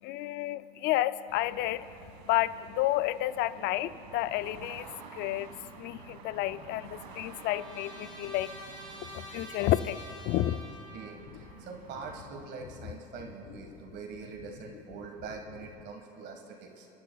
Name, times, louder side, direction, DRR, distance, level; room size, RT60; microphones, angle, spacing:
voice 1, 0.0-1.9 2.2-5.5 5.8-8.6 9.0-10.9, left 15 dB, 55° left, 15 dB, 0.4 m, -31 dB
sound 1, 1.3-12.2, right 5 dB, 85° right, 1.5 m, -50 dB
Trumpet, 6.5-11.3, equal, 20° right, 3.4 m, -48 dB
voice 2, 10.9-16.9, right 5 dB, 55° right, 2 dB, 1.6 m, -44 dB
29.5 x 11.5 x 2.3 m, 2.8 s
supercardioid pair, 95°, 21 cm